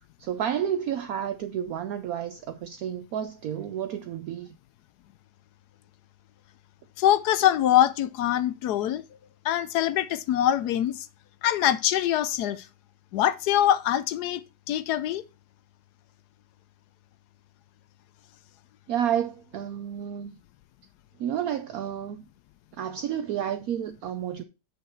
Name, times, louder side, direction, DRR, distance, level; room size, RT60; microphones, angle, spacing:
voice 1, 0.2-4.6 18.9-20.4 21.2-22.2 22.7-24.4, right 9 dB, 65° right, 1.0 m, -30 dB
voice 2, 7.0-9.0 9.4-11.1 11.4-12.7 13.1-14.4 14.7-15.2, left 11 dB, 75° left, 1.1 m, -23 dB
7.5 x 6.2 x 4.4 m
omnidirectional pair, 1.9 m